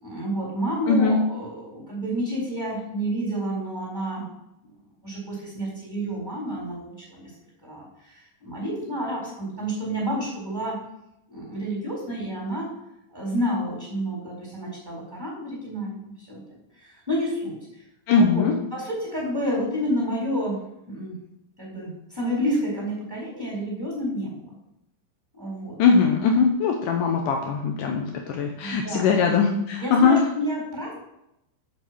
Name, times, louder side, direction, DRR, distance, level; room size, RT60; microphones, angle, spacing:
voice 1, 0.0-4.3 4.6-4.7 5.0-7.3 7.6-10.8 11.3-12.7 13.1-16.4 16.8-17.6 18.1-18.4 18.7-20.6 20.9-21.1 21.6-24.6 25.3-25.8 28.6-29.1 29.8-30.9, equal, 5° right, -5 dB, 3.5 m, -29 dB
voice 2, 18.1-18.5 25.8-30.2, left 5 dB, 90° left, 3 dB, 1.8 m, -21 dB
7.7 x 7.1 x 6.1 m, 0.83 s
omnidirectional pair, 5.1 m